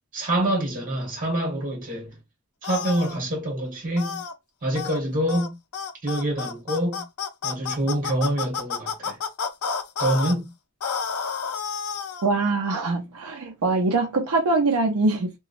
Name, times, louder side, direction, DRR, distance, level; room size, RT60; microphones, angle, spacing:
voice 1, 0.1-2.2 2.6-4.2 4.6-5.6 6.0-7.1 7.4-9.2 10.0-10.5, right 1 dB, 40° right, 1.3 m, -26 dB
sound 1, 2.6-3.2 4.0-4.3 4.8-5.0 5.3-5.5 5.7-10.3 10.8-12.3, left 6 dB, 80° left, 0.5 m, -30 dB
voice 2, 12.2-15.3, right 3 dB, 85° right, 0.6 m, -23 dB
2.9 x 2.3 x 2.4 m
head